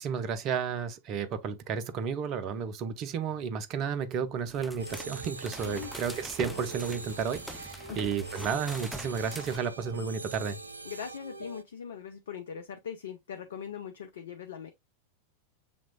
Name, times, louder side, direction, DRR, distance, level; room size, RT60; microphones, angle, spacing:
voice 1, 0.0-10.6, right 6 dB, 35° right, 0.6 m, -32 dB
sound 1, 4.5-9.6, equal, ahead, 0.4 m, -44 dB
sound 2, 4.8-11.6, right 3 dB, 80° right, 0.3 m, -43 dB
voice 2, 10.8-14.7, left 7 dB, 60° left, 0.5 m, -41 dB
7.0 x 3.0 x 2.2 m
figure-of-eight pair, 90°, 0 cm